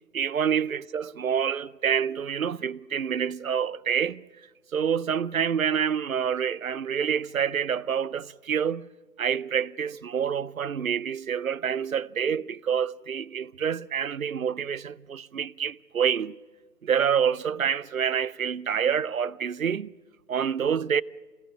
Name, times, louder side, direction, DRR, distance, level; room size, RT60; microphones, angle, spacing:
voice 1, 0.1-4.2 4.7-8.9 9.2-16.4 16.8-19.9 20.3-21.0, right 7 dB, 60° right, 0.6 m, -27 dB
22.5 x 17.0 x 8.5 m
figure-of-eight pair, 150°, 49 cm